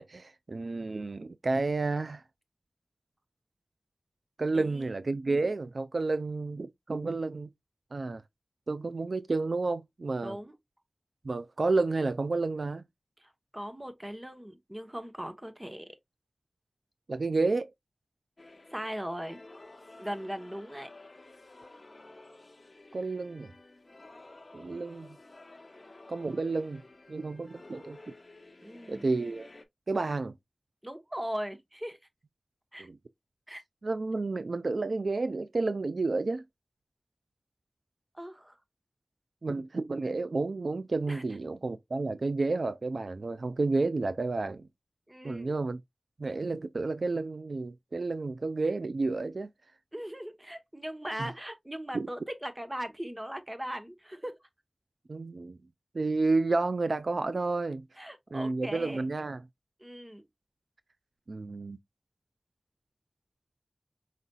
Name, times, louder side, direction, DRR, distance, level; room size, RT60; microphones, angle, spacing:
voice 1, 0.0-2.2 4.4-7.5 7.9-8.2 8.7-10.4 11.2-12.8 17.1-17.7 22.9-23.5 24.5-25.2 26.1-26.8 27.1-28.0 28.9-29.5 29.9-30.4 32.8-33.0 33.8-36.4 39.4-44.7 45.2-45.8 46.2-49.5 51.2-51.3 51.9-52.1 55.1-55.6 55.9-57.8 58.3-59.4 61.3-61.8, right 3 dB, 70° right, 0.3 m, -31 dB
voice 2, 4.5-4.9 10.2-10.5 13.5-16.0 18.7-19.4 20.0-20.9 28.6-29.1 30.8-32.0 32.7-32.9 33.5-33.6 38.1-38.6 41.1-41.2 45.1-45.5 49.9-54.4 58.0-59.1 59.8-60.2, equal, 15° right, 0.9 m, -39 dB
sound 1, 18.4-29.6, left 2 dB, 50° left, 0.9 m, -53 dB
4.9 x 4.0 x 2.2 m
wide cardioid pair, 65°, 0 cm